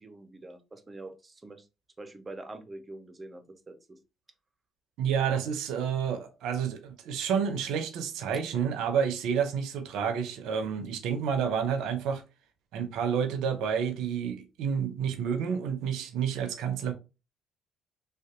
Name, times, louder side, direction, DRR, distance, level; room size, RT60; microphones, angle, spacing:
voice 1, 0.0-1.7 2.0-4.0, right 2 dB, 25° right, 0.6 m, -45 dB
voice 2, 5.0-12.2 12.7-16.9, right 7 dB, 75° right, 0.5 m, -29 dB
2.6 x 2.2 x 2.5 m
hypercardioid pair, 60°, 0 cm